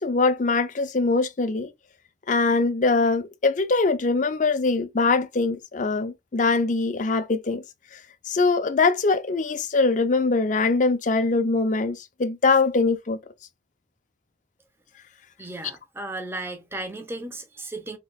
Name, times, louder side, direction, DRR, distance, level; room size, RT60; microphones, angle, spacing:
voice 1, 0.0-1.7 2.3-7.6 8.3-13.2, left 3 dB, 45° left, 0.5 m, -22 dB
voice 2, 15.4-18.0, right 2 dB, 15° right, 0.8 m, -35 dB
4.0 x 3.0 x 2.2 m
head